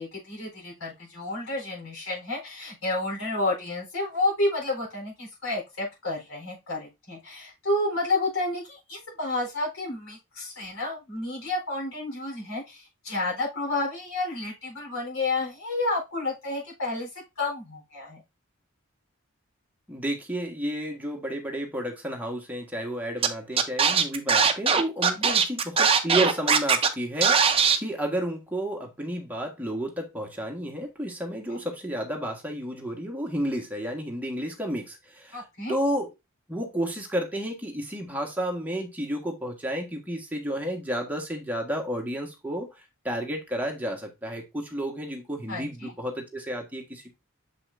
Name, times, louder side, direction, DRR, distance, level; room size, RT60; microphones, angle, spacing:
voice 1, 0.0-17.1 17.4-18.2 25.0-25.3 31.5-31.6 35.3-35.8 45.5-45.9, left 2 dB, 85° left, 4.1 m, -30 dB
voice 2, 19.9-35.4 35.7-36.1 36.5-47.2, right 1 dB, 10° right, 1.5 m, -31 dB
Scratching (performance technique), 23.2-23.3 23.6-26.9 27.2-27.8, right 6 dB, 25° right, 0.7 m, -20 dB
6.8 x 5.6 x 2.6 m
head